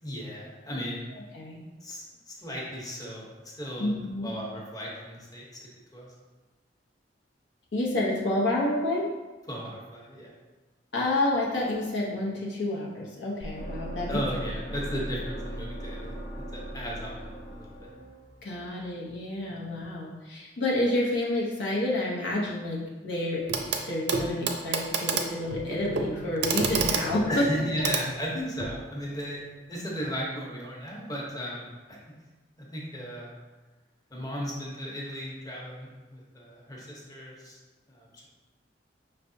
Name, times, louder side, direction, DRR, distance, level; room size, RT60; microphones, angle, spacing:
voice 1, 0.0-1.1 1.8-3.9 4.2-6.1 9.5-10.3 14.1-16.2 16.5-17.9 19.5-19.6 27.3-29.4 29.7-32.0 32.6-33.3 34.1-37.6 37.9-38.3, equal, 20° left, -3 dB, 0.9 m, -36 dB
voice 2, 1.1-1.5 3.8-4.3 7.7-9.1 10.9-14.2 18.4-23.4 23.9-27.5, left 1 dB, 80° left, -4 dB, 0.9 m, -29 dB
sound 1, 13.4-19.5, equal, 45° left, 0.9 m, -39 dB
Clock, 23.5-23.8 24.1-28.8 30.0-30.1, right 5 dB, 70° right, 0.5 m, -30 dB
5.5 x 3.3 x 2.7 m, 1.2 s
head